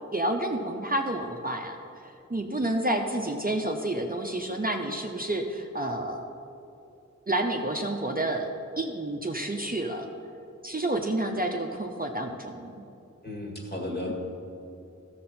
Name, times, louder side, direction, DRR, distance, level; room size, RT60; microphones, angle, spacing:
voice 1, 0.1-1.8 2.3-6.2 7.3-8.5 8.8-10.1 10.6-12.7, right 1 dB, 30° right, 2 dB, 0.7 m, -29 dB
voice 2, 13.2-14.1, left 1 dB, 35° left, -1 dB, 1.9 m, -34 dB
13.5 x 6.7 x 4.3 m, 2.7 s
wide cardioid pair, 45°, 30 cm